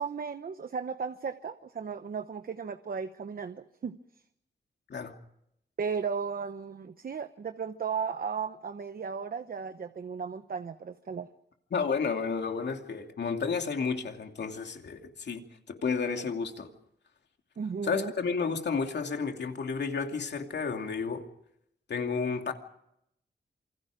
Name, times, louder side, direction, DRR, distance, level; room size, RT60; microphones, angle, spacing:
voice 1, 0.0-4.0 5.8-11.3 17.6-18.1, right 6 dB, 55° right, 1.0 m, -35 dB
voice 2, 11.7-15.4 15.7-16.7 17.8-21.3 21.9-22.5, left 5 dB, 80° left, 2.7 m, -31 dB
27.5 x 25.0 x 5.1 m
wide cardioid pair, 170°, 18 cm